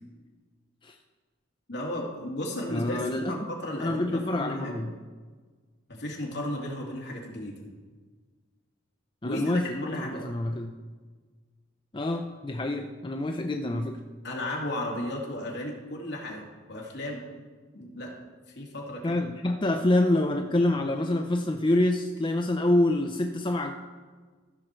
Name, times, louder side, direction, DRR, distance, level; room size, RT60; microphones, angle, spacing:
voice 1, 1.7-3.0 3.3-4.9 5.9-7.6 9.2-9.4 9.8-10.2 14.2-17.2 17.7-18.1 18.5-19.2, left 1 dB, 60° left, -2 dB, 2.4 m, -34 dB
voice 2, 2.7-3.3 3.8-4.9 9.2-10.7 11.9-14.0 19.0-23.7, left 1 dB, 25° left, 4 dB, 0.5 m, -26 dB
15.0 x 6.5 x 4.4 m, 1.4 s
head